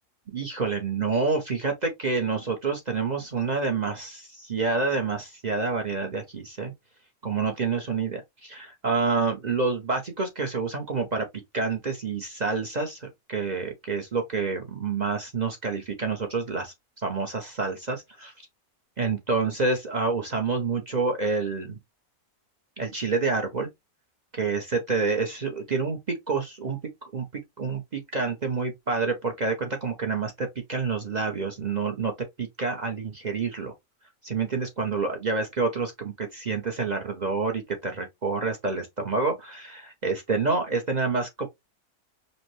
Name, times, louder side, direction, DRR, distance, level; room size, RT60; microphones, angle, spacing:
voice 1, 0.3-6.7 7.2-11.3 11.5-16.7 17.0-18.3 19.0-21.8 22.8-23.7 24.3-32.1 32.4-33.7 34.2-41.5, right 4 dB, 45° right, 0.6 m, -28 dB
5.2 x 2.1 x 3.1 m
omnidirectional pair, 1.6 m